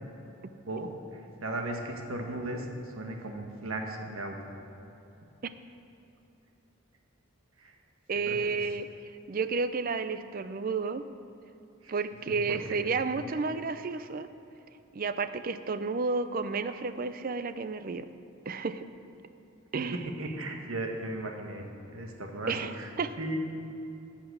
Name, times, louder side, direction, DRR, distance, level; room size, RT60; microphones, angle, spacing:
voice 1, 0.6-4.5 7.6-7.8 8.3-8.4 11.8-12.0 12.5-12.8 19.8-21.6 21.9-22.9 23.2-23.4, right 1 dB, 75° right, 2 dB, 1.3 m, -36 dB
voice 2, 8.1-11.0 11.9-14.3 14.9-18.1 18.5-18.9 19.7-20.0 22.5-22.7 23.0-23.1, right 4 dB, 40° right, 12 dB, 0.4 m, -31 dB
11.5 x 6.0 x 7.9 m, 2.9 s
head